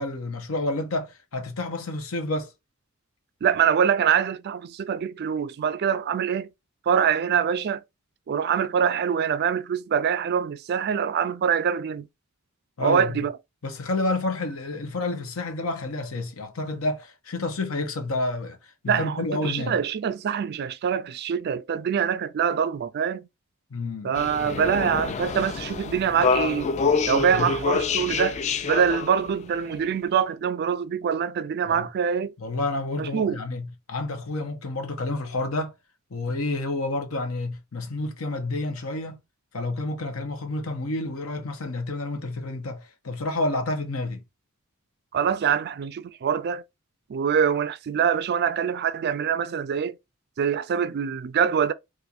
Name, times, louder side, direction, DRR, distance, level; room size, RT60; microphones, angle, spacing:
voice 1, 0.0-2.5 12.8-13.3 13.6-19.8 23.7-24.1 24.4-24.6 27.3-27.6 31.7-31.9 32.4-35.7 36.1-39.2 39.5-44.2, left 2 dB, 80° left, 0.8 m, -29 dB
voice 2, 3.4-6.5 6.9-7.8 8.3-12.1 12.8-13.3 18.9-23.3 24.0-26.7 27.1-32.3 33.0-33.4 45.1-46.6 47.1-50.0 50.4-51.7, right 7 dB, 50° right, 0.3 m, -24 dB
sound 1, 24.1-29.8, left 5 dB, 35° left, 0.3 m, -26 dB
4.2 x 2.5 x 2.4 m
head